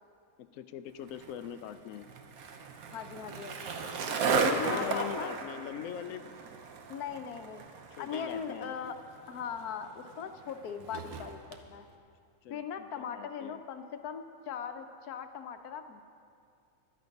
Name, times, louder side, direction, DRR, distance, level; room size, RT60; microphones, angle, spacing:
voice 1, 0.4-2.1 4.3-6.3 8.0-8.7 12.4-13.6, left 10 dB, 70° left, 10 dB, 0.9 m, -41 dB
Skateboard, 1.1-11.6, right 4 dB, 70° right, 1.4 m, -36 dB
voice 2, 2.9-3.7 4.2-5.3 6.9-7.6 8.0-9.0 9.3-11.4 11.7-11.9 12.5-16.0, left 7 dB, 90° left, 8 dB, 1.3 m, -39 dB
14.5 x 11.5 x 5.3 m, 2.3 s
omnidirectional pair, 1.6 m